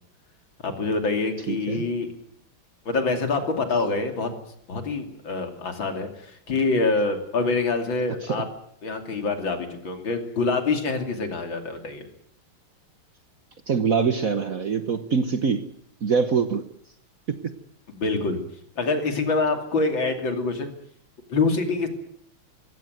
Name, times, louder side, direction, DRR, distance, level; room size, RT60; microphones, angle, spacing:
voice 1, 0.6-2.1 2.9-4.3 4.7-8.5 8.8-12.1 17.9-18.4 18.8-20.7 21.3-21.9, left 3 dB, 60° left, 6 dB, 3.5 m, -25 dB
voice 2, 1.5-1.8 8.2-8.4 13.7-15.7 16.0-16.7 17.3-17.4, right 5 dB, 50° right, 10 dB, 1.2 m, -24 dB
20.5 x 16.5 x 9.3 m, 0.67 s
omnidirectional pair, 2.4 m